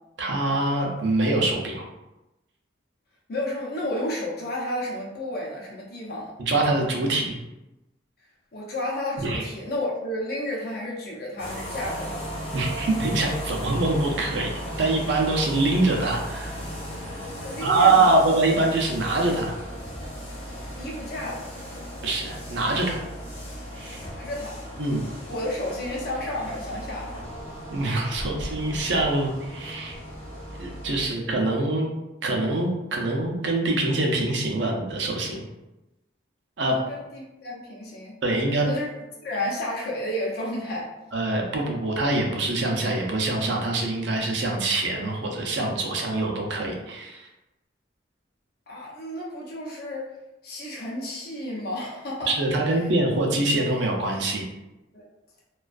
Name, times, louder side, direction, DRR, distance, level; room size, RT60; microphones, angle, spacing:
voice 1, 0.2-1.8 6.4-7.4 9.2-9.5 12.5-14.5 14.8-16.6 17.6-19.5 22.0-23.0 23.7-24.0 24.8-25.0 27.7-30.0 30.6-31.9 32.2-35.4 36.6-36.7 38.2-38.7 41.1-47.3 52.3-54.4, right 2 dB, 70° right, 1 dB, 0.4 m, -24 dB
voice 2, 3.3-6.3 8.5-12.2 17.4-18.2 20.5-21.5 23.9-24.6 25.3-27.1 31.0-31.2 36.6-38.1 38.6-38.9 39.2-40.9 48.7-50.1 50.4-52.3 54.9-55.0, left 1 dB, 55° left, -3 dB, 0.6 m, -32 dB
sound 1, 11.4-31.1, equal, 30° left, 0.9 m, -36 dB
2.4 x 2.2 x 2.3 m, 0.99 s
head